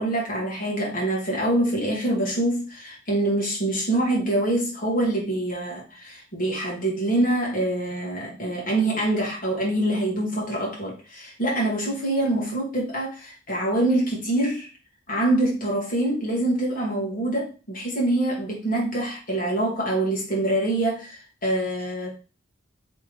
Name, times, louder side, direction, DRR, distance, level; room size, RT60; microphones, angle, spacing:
voice 1, 0.0-14.7 15.1-22.1, right 1 dB, 45° left, -3 dB, 1.6 m, -25 dB
3.4 x 3.4 x 3.1 m, 0.34 s
head